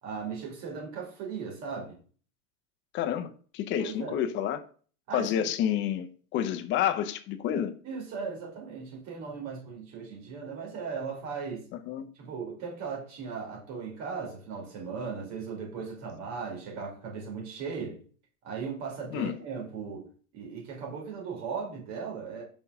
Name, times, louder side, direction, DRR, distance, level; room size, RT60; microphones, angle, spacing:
voice 1, 0.0-2.0 3.8-4.2 5.1-5.5 7.8-11.7 12.1-18.0 18.4-20.1 20.3-22.4, right 5 dB, 40° right, 3.1 m, -37 dB
voice 2, 2.9-4.6 5.1-7.7 11.9-12.1 19.1-19.4, left 10 dB, 30° left, 0.6 m, -29 dB
5.5 x 4.4 x 5.5 m
supercardioid pair, 150°, 42 cm